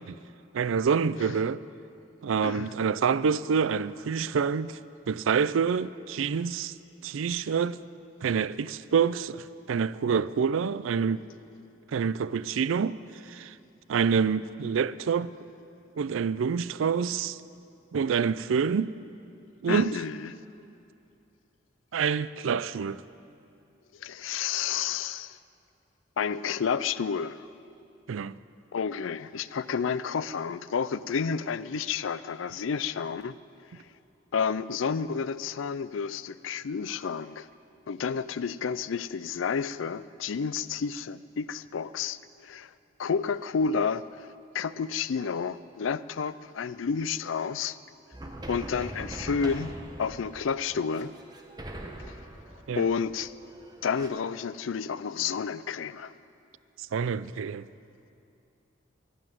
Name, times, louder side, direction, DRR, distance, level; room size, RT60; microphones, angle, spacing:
voice 1, 0.5-1.6 2.2-4.8 5.1-6.7 7.0-7.8 8.2-11.2 11.9-13.0 13.3-13.5 13.9-15.3 16.0-17.4 17.9-18.9 19.6-19.9 21.9-23.0 28.1-28.3 52.7-52.8 56.9-57.7, right 6 dB, 90° right, 0.4 m, -27 dB
voice 2, 2.4-2.7 19.7-20.3 24.0-25.4 26.2-27.5 28.7-33.4 34.3-37.5 37.9-42.7 43.0-44.1 44.5-47.8 48.5-49.7 50.0-51.1 52.8-53.3 53.8-56.1, left 6 dB, 85° left, 0.4 m, -30 dB
sound 1, 48.1-54.1, right 1 dB, 20° right, 1.0 m, -42 dB
12.0 x 12.0 x 9.2 m
head